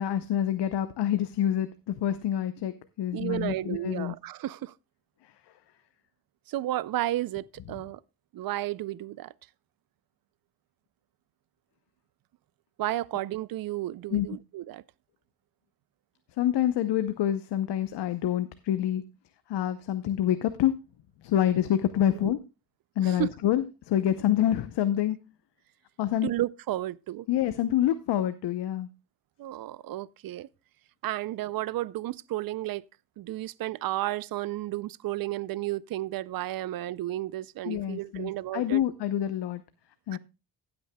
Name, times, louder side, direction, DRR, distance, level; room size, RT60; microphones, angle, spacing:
voice 1, 0.0-4.1 14.1-14.3 16.4-19.0 19.5-20.7 21.2-22.4 23.0-25.2 26.0-26.3 27.3-28.9 37.6-39.6 40.1-40.2, left 11 dB, 80° left, 0.8 m, -27 dB
voice 2, 3.1-4.7 6.5-8.0 8.3-9.3 12.8-14.8 22.1-22.3 23.0-23.3 26.2-27.3 29.4-30.5 31.0-32.8 33.2-38.8 40.1-40.2, right 15 dB, 60° right, 0.5 m, -32 dB
16.0 x 8.7 x 2.2 m
cardioid pair, 130°, 41 cm